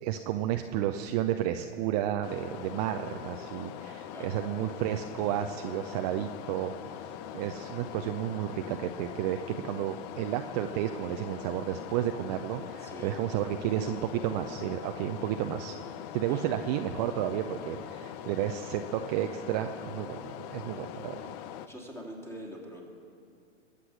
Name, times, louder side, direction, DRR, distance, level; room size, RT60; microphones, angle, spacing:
voice 1, 0.0-15.8 16.1-21.2, right 11 dB, 35° right, 6 dB, 0.6 m, -32 dB
sound 1, 2.2-21.7, left 10 dB, 35° left, 0.6 m, -42 dB
voice 2, 12.8-13.1 16.3-16.4 21.7-22.8, equal, 5° left, 0 dB, 2.5 m, -43 dB
22.0 x 8.4 x 6.2 m, 2.4 s
hypercardioid pair, 120°, 35 cm